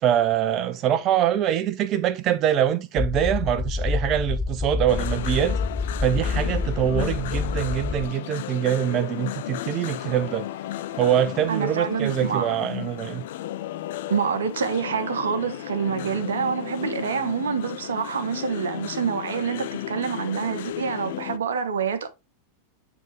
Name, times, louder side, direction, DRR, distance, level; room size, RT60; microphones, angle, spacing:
voice 1, 0.0-5.6 6.0-10.5 11.0-13.2, right 10 dB, 35° right, 0.8 m, -24 dB
sound 1, 3.0-8.1, left 4 dB, 5° left, 0.7 m, -27 dB
sound 2, 4.9-21.4, left 13 dB, 55° left, 0.5 m, -34 dB
voice 2, 11.5-12.5 14.1-22.1, right 6 dB, 65° right, 1.1 m, -27 dB
9.3 x 3.7 x 3.1 m
figure-of-eight pair, 90°, 0 cm